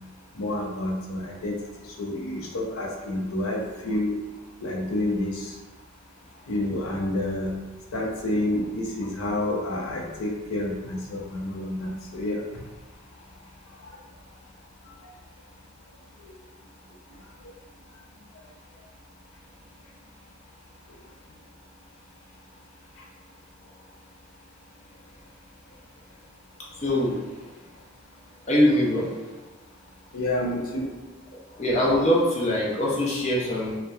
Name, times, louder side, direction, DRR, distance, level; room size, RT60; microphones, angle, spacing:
voice 1, 0.4-4.1 4.6-5.6 6.5-7.6 7.9-12.6 13.8-14.0 15.0-15.1 16.2-16.4 23.0-23.1 30.1-30.9, left 1 dB, 85° left, 0 dB, 0.5 m, -29 dB
voice 2, 26.8-27.2 28.5-29.0 31.6-33.8, left 1 dB, 30° left, -5 dB, 0.5 m, -22 dB
2.8 x 2.1 x 2.2 m, 1.2 s
head